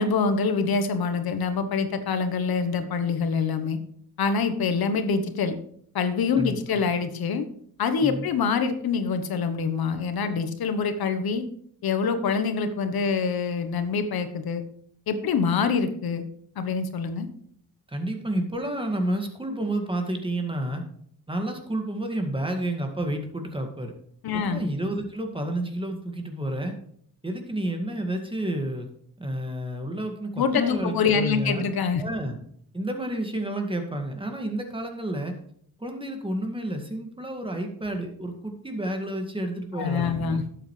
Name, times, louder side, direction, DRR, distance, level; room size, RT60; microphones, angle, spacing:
voice 1, 0.0-3.8 4.2-5.6 5.9-7.5 7.8-11.4 11.8-14.6 15.1-16.2 16.6-17.3 24.2-24.6 30.4-32.0 39.7-40.4, left 5 dB, 85° left, 9 dB, 1.2 m, -25 dB
voice 2, 17.9-20.8 21.3-23.9 24.3-26.7 27.2-28.9 29.2-31.6 32.0-32.4 32.7-35.3 35.8-40.4, right 1 dB, 15° right, 4 dB, 2.0 m, -30 dB
11.5 x 8.1 x 3.3 m, 0.63 s
cardioid pair, 80°, 36 cm